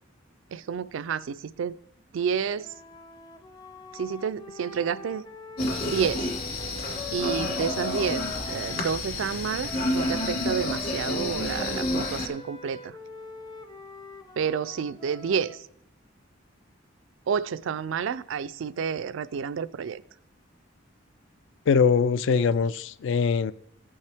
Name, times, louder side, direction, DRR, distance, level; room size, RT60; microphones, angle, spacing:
voice 1, 0.5-1.8 2.1-2.7 3.9-5.2 5.9-6.3 7.1-13.0 14.4-15.7 17.3-20.0, right 6 dB, 80° right, 0.4 m, -30 dB
Wind instrument woodwind instrument, 2.5-8.9 9.6-15.7, left 2 dB, 20° left, 0.6 m, -43 dB
sound 1, 5.6-12.3, left 2 dB, 50° left, 2.0 m, -30 dB
voice 2, 21.7-23.5, left 5 dB, 65° left, 0.3 m, -22 dB
15.0 x 5.4 x 3.5 m
head